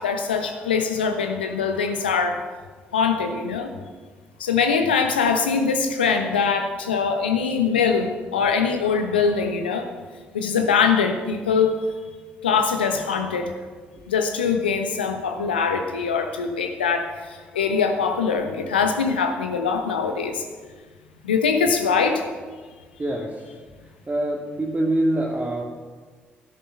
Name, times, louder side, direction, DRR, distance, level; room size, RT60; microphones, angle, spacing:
voice 1, 0.0-2.4 2.9-3.7 4.4-9.9 10.3-11.8 12.4-13.5 14.1-20.4 21.2-22.3, left 5 dB, 85° left, 6 dB, 1.1 m, -22 dB
voice 2, 23.0-23.5 23.8-25.6, right 1 dB, 25° right, -3 dB, 2.1 m, -25 dB
13.0 x 10.5 x 5.9 m, 1.4 s
hypercardioid pair, 45°, 5 cm